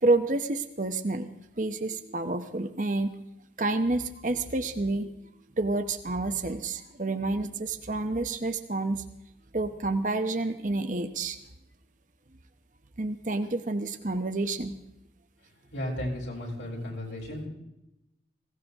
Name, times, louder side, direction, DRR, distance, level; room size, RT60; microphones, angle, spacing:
voice 1, 0.0-1.3 1.6-3.1 3.6-5.1 5.6-9.0 9.5-11.4 13.0-14.8, right 2 dB, 45° right, 8 dB, 0.9 m, -29 dB
voice 2, 15.7-17.5, left 1 dB, 90° left, -3 dB, 6.8 m, -34 dB
20.0 x 17.5 x 3.6 m, 0.89 s
head